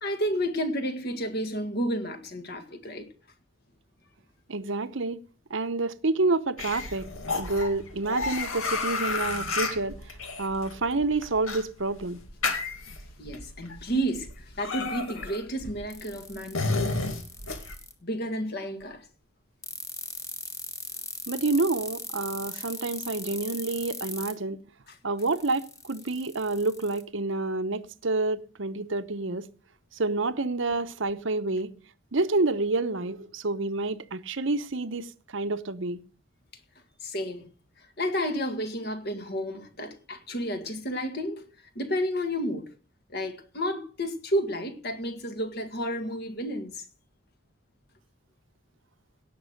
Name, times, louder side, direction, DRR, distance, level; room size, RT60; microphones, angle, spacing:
voice 1, 0.0-3.1 13.2-16.8 18.0-19.1 22.6-22.7 24.9-25.0 37.0-37.4 38.0-41.4 41.8-42.7 43.1-46.9, equal, 50° left, 1.8 m, -31 dB
voice 2, 4.5-5.2 5.5-12.2 21.3-24.6 25.0-29.5 29.9-31.7 32.1-36.0, right 3 dB, 60° right, 0.9 m, -28 dB
sound 1, 6.6-17.8, left 3 dB, 75° left, 2.2 m, -32 dB
sound 2, 15.9-17.9 19.6-24.3 25.2-27.0, left 3 dB, 15° left, 1.4 m, -38 dB
17.5 x 6.3 x 6.5 m
head